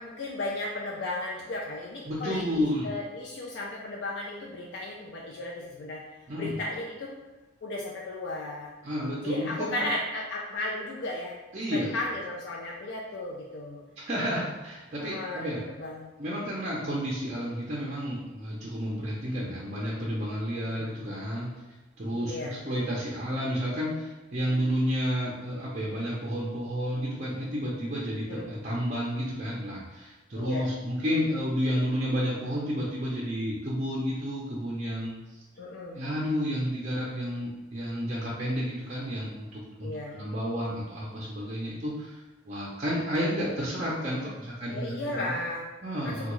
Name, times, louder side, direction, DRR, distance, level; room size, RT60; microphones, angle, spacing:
voice 1, 0.0-6.0 6.3-7.2 7.6-8.7 9.2-11.4 11.7-13.8 15.0-15.5 15.8-16.1 20.6-20.9 22.1-22.6 28.3-28.5 30.3-30.7 35.6-36.0 39.8-40.1 44.1-44.4 44.7-45.7 46.0-46.3, left 2 dB, 60° left, -2 dB, 0.4 m, -35 dB
voice 2, 2.1-2.9 6.3-6.5 8.8-9.8 11.5-12.0 14.0-15.6 16.2-21.6 22.0-35.4 35.9-42.2 42.5-45.3 45.8-46.3, equal, 35° right, -5 dB, 0.5 m, -31 dB
3.5 x 2.2 x 3.0 m, 1.1 s
head